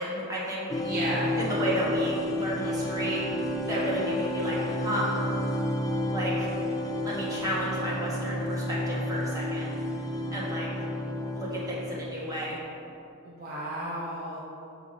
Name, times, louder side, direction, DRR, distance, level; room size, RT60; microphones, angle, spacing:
voice 1, 0.0-0.6 1.4-3.2 3.6-5.1 6.1-6.5 7.0-9.7 10.3-10.7 11.3-12.6, equal, 15° right, -7 dB, 1.6 m, -32 dB
sound 1, 0.7-12.6, left 1 dB, 15° left, 0.4 m, -31 dB
voice 2, 0.8-1.4 13.2-14.4, right 1 dB, 45° right, -6 dB, 0.9 m, -33 dB
7.0 x 3.6 x 6.3 m, 2.8 s
head